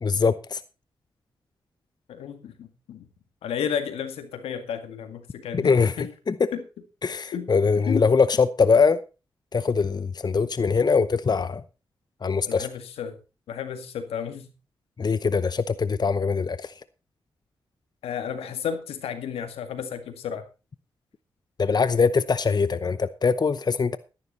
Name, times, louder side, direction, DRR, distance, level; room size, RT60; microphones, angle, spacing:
voice 1, 0.0-0.6 5.5-6.5 7.0-9.0 9.5-11.6 12.2-12.7 15.0-16.7 21.6-24.0, left 5 dB, 45° left, 0.8 m, -22 dB
voice 2, 2.1-3.1 3.4-6.1 6.5-6.6 7.3-7.5 7.8-8.1 12.5-13.2 13.5-14.5 18.0-20.4, left 8 dB, 85° left, 2.0 m, -32 dB
13.0 x 11.5 x 4.2 m
supercardioid pair, 45°, 10 cm